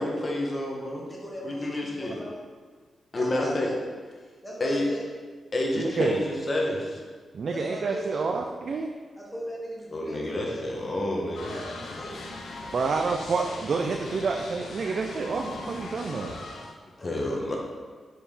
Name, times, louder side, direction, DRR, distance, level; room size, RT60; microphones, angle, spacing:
voice 1, 0.0-1.0 1.4-2.1 3.1-3.7 4.6-4.8 5.5-7.0 9.9-11.5 17.0-17.6, left 1 dB, 35° left, -1 dB, 1.3 m, -29 dB
voice 2, 1.0-2.4 3.1-3.8 4.4-5.1 7.5-8.3 9.1-10.6 11.4-12.2 17.0-17.3, equal, 10° left, -4 dB, 1.3 m, -38 dB
voice 3, 5.8-6.2 7.3-8.9 12.7-16.3, right 4 dB, 55° right, 3 dB, 0.4 m, -28 dB
sound 1, 11.3-16.7, left 2 dB, 80° left, 0.8 m, -40 dB
7.0 x 4.6 x 3.8 m, 1.5 s
cardioid pair, 100°, 0 cm